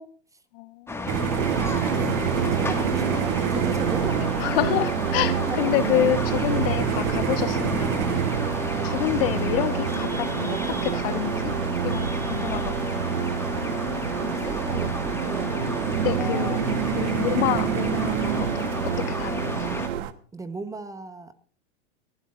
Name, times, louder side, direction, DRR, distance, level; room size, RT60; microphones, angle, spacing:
voice 1, 0.0-0.4 2.1-4.5 5.2-6.0 6.7-6.9 8.8-9.0 14.2-15.5 16.1-16.6 20.3-21.3, right 3 dB, 10° right, 1.1 m, -37 dB
voice 2, 0.5-1.1 4.4-8.3 8.8-11.5 11.8-13.2 16.0-16.6 17.0-19.5, left 14 dB, 50° left, 1.3 m, -28 dB
sound 1, 0.9-19.9, left 3 dB, 5° left, 1.9 m, -32 dB
sound 2, 1.1-20.1, right 10 dB, 40° right, 1.3 m, -30 dB
sound 3, 1.4-20.0, right 8 dB, 85° right, 1.5 m, -30 dB
29.0 x 12.0 x 2.6 m
hypercardioid pair, 130°, 37 cm